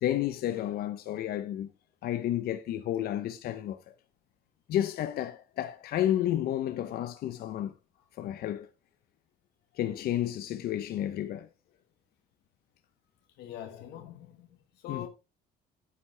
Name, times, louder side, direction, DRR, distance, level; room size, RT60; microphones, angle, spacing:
voice 1, 0.0-1.7 2.0-3.8 4.7-7.7 8.2-8.7 9.8-11.5 14.9-15.1, left 12 dB, 65° left, 0.8 m, -31 dB
voice 2, 13.4-14.5 14.8-15.1, left 11 dB, 85° left, 1.6 m, -43 dB
9.7 x 8.4 x 3.3 m
cardioid pair, 110°, 17 cm